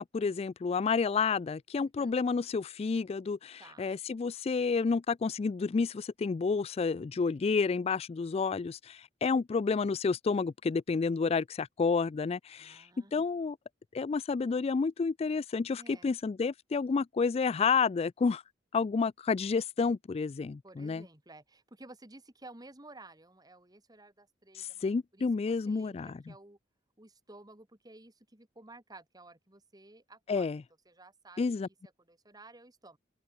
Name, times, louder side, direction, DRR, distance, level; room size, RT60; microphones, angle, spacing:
voice 1, 0.0-13.6 13.9-18.4 18.7-21.0 24.5-26.2 30.3-30.6 31.4-31.7, left 5 dB, 35° left, 0.3 m, -30 dB
voice 2, 1.8-2.1 3.6-3.9 12.6-13.2 15.8-16.1 20.6-26.6 27.0-30.5 30.9-33.0, right 2 dB, 20° right, 2.6 m, -54 dB
open air
head